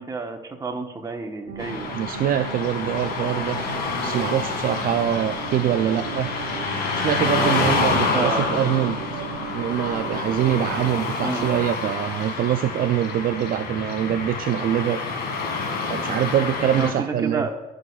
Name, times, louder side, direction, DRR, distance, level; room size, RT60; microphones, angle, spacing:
voice 1, 0.0-2.0 3.9-4.2 7.6-8.4 11.2-11.5 16.8-17.5, right 4 dB, 20° right, 3 dB, 1.2 m, -30 dB
sound 1, 1.5-11.0, right 8 dB, 90° right, 0.8 m, -36 dB
Car passing by / Traffic noise roadway noise, 1.6-16.9, left 4 dB, 70° left, 2.1 m, -28 dB
voice 2, 1.9-3.6 4.0-6.3 6.9-9.0 9.5-15.0 15.9-17.5, right 10 dB, 55° right, 8 dB, 0.5 m, -24 dB
17.5 x 6.3 x 2.4 m, 1.0 s
cardioid pair, 110°, 17 cm